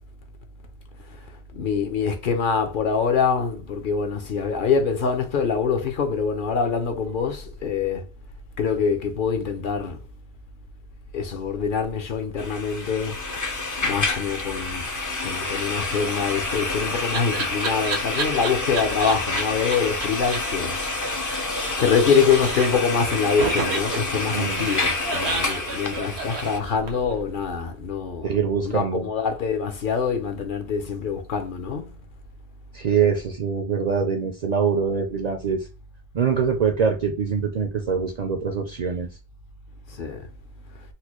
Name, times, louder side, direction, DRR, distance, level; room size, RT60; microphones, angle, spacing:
voice 1, 1.1-8.0 8.6-10.0 11.1-13.2 13.8-14.9 15.2-20.8 21.8-28.3 28.6-31.9 39.9-40.3, left 6 dB, 60° left, 0.7 m, -25 dB
sound 1, 12.4-26.6, left 2 dB, 30° left, 0.3 m, -28 dB
Laughter, 16.3-19.4 19.7-19.8 20.0-20.1 20.3-20.4 20.7-22.0 22.2-22.9 23.4-27.1, right 4 dB, 85° right, 1.1 m, -31 dB
voice 2, 24.3-24.7 28.2-29.1 32.7-35.6 36.1-39.1, right 6 dB, 55° right, 0.5 m, -24 dB
4.1 x 2.1 x 2.9 m
omnidirectional pair, 1.1 m